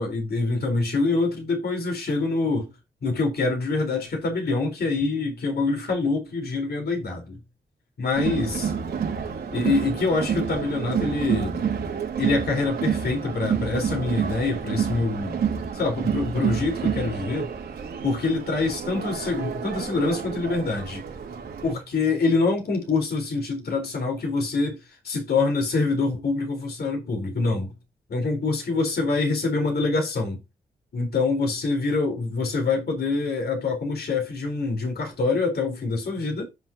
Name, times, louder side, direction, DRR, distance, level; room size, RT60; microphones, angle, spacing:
voice 1, 0.0-2.7 3.0-7.4 8.0-8.6 9.5-11.7 12.2-15.4 15.7-17.4 18.0-21.0 21.6-24.8 25.0-27.7 28.1-30.4 30.9-36.4, left 3 dB, 75° left, 4.3 m, -25 dB
Crowd, 8.1-21.7, right 7 dB, 90° right, 2.6 m, -29 dB
9.2 x 7.8 x 2.9 m
cardioid pair, 50°, 17 cm